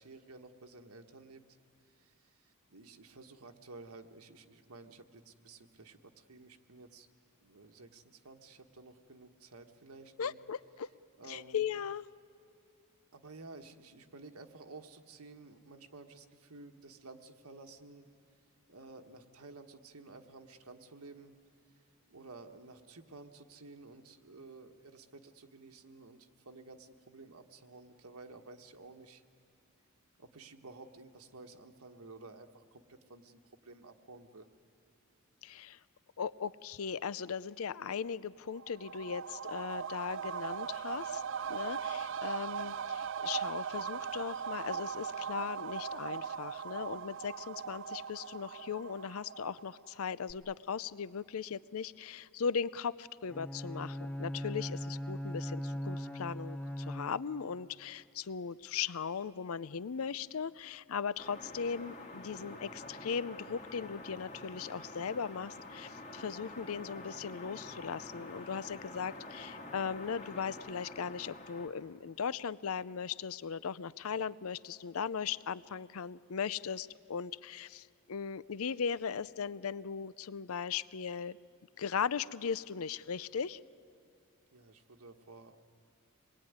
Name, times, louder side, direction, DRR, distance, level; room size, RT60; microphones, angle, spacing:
voice 1, 0.0-1.4 1.8-7.1 7.4-10.4 11.2-11.6 13.1-18.1 18.7-21.3 22.1-29.2 30.2-34.5 84.5-85.6, right 3 dB, 85° right, 5 dB, 1.5 m, -53 dB
voice 2, 10.2-10.9 11.3-12.0 35.4-35.8 36.2-41.2 41.5-81.4 81.8-83.6, left 6 dB, 70° left, 18 dB, 0.5 m, -38 dB
sound 1, 38.5-50.0 50.3-50.4, right 7 dB, 55° right, 0.6 m, -39 dB
Bowed string instrument, 53.3-57.5, equal, 5° left, 0.6 m, -39 dB
sound 2, 61.2-71.7, left 2 dB, 30° left, 2.0 m, -48 dB
25.5 x 20.5 x 9.6 m, 2.6 s
head